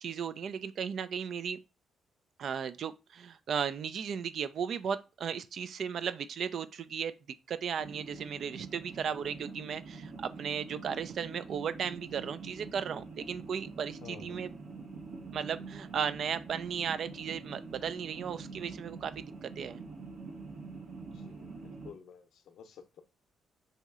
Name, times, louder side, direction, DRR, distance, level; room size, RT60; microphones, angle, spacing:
voice 1, 0.0-1.6 2.4-7.1 7.5-14.5 15.3-19.8, right 7 dB, 60° right, 0.3 m, -36 dB
sound 1, 7.8-21.9, right 4 dB, 90° right, 1.2 m, -46 dB
voice 2, 14.0-14.4 21.1-21.5 21.8-23.0, left 7 dB, 75° left, 0.6 m, -51 dB
3.0 x 2.8 x 3.6 m
cardioid pair, 90°, 0 cm